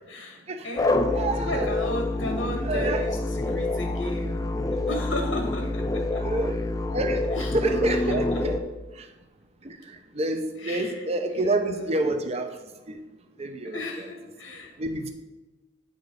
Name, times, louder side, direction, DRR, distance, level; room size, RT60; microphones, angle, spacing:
voice 1, 0.1-4.4 4.7-6.2 7.3-7.6 7.9-8.0 8.3-8.4 10.6-12.2 13.7-14.7, left 1 dB, 90° left, 1 dB, 1.8 m, -35 dB
sound 1, 0.8-8.6, left 2 dB, 20° left, 0.5 m, -27 dB
voice 2, 1.1-1.7 2.6-3.0 6.2-6.6 6.9-8.5 9.0-9.1 9.6-12.5 12.9-13.0 13.4-14.1 14.8-15.1, right 2 dB, 35° right, 6 dB, 0.6 m, -28 dB
9.1 x 5.0 x 4.0 m, 1.1 s
head